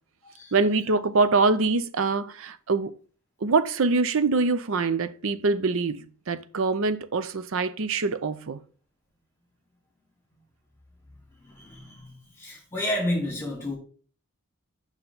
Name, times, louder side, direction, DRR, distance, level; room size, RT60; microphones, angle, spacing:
voice 1, 0.5-2.9 3.4-8.6, right 3 dB, 65° right, 0.6 m, -24 dB
voice 2, 11.4-13.8, left 1 dB, 10° left, 3.0 m, -31 dB
7.7 x 5.7 x 4.0 m
head